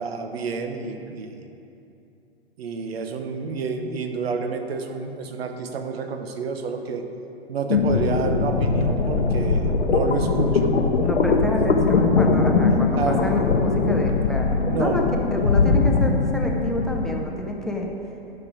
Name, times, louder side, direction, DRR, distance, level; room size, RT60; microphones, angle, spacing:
voice 1, 0.0-1.4 2.6-7.0 7.5-10.8 11.4-11.7 12.7-13.4 14.6-15.2, right 5 dB, 70° right, 6 dB, 1.0 m, -29 dB
sound 1, 7.7-17.1, left 4 dB, 85° left, 0.9 m, -21 dB
voice 2, 11.0-15.0 15.3-17.9, left 1 dB, ahead, 0 dB, 0.6 m, -28 dB
12.0 x 4.9 x 4.9 m, 2.7 s
hypercardioid pair, 125°, 31 cm